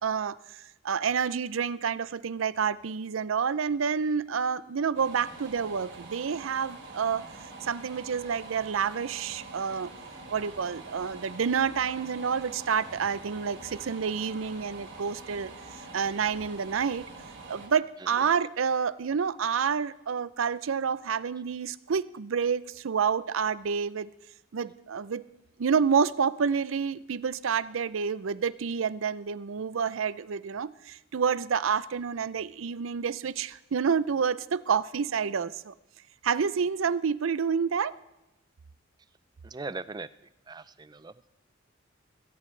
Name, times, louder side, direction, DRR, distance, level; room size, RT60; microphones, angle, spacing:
voice 1, 0.0-7.3 7.6-9.9 10.3-17.1 17.5-24.1 24.5-25.2 25.6-35.7 36.2-38.0, right 6 dB, 80° right, 18 dB, 0.5 m, -29 dB
sound 1, 5.0-17.7, right 3 dB, 60° right, 3.2 m, -45 dB
voice 2, 39.4-40.1 40.5-41.1, right 3 dB, 20° right, 16 dB, 0.4 m, -39 dB
21.0 x 17.0 x 3.3 m, 0.96 s
head